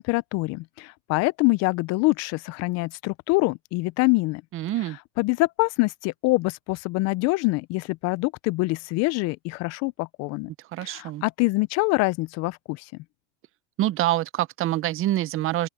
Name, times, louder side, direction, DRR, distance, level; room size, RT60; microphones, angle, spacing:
voice 1, 0.0-4.4 5.2-10.5 10.8-12.8, left 24 dB, 55° left, 0.8 m, -25 dB
voice 2, 4.5-5.0 10.7-11.2 13.8-15.7, right 14 dB, 40° right, 0.9 m, -26 dB
open air
hypercardioid pair, 100°, 32 cm